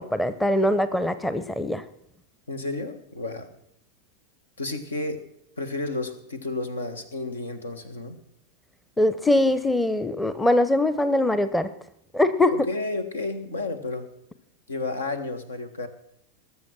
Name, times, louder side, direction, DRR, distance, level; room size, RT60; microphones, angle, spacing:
voice 1, 0.0-1.8 9.0-11.7 12.1-12.5, left 1 dB, 5° left, 13 dB, 0.8 m, -22 dB
voice 2, 2.5-3.5 4.6-5.2 5.6-8.2 12.5-14.1 14.7-15.9, left 2 dB, 70° left, 10 dB, 1.5 m, -31 dB
20.0 x 7.3 x 6.1 m, 0.74 s
figure-of-eight pair, 90°, 0 cm